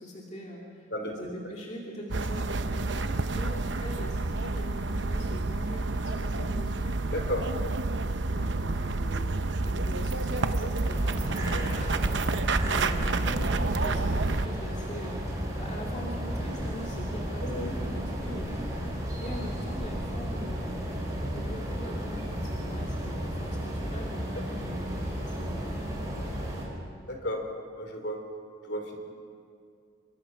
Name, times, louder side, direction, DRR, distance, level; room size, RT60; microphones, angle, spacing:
voice 1, 0.0-7.0 7.9-11.6 12.6-18.9 19.2-20.9 21.3-26.8, equal, 35° left, -2 dB, 2.4 m, -42 dB
sound 1, 2.1-14.5, right 3 dB, 65° right, 0.8 m, -29 dB
voice 2, 7.1-7.4 10.6-10.7 11.5-11.7 17.4-17.8 27.1-27.5 27.7-28.2 28.6-29.0, equal, 55° left, 4 dB, 3.5 m, -33 dB
sound 2, 10.8-26.7, equal, 20° right, 5.0 m, -33 dB
27.0 x 23.5 x 5.9 m, 2.3 s
head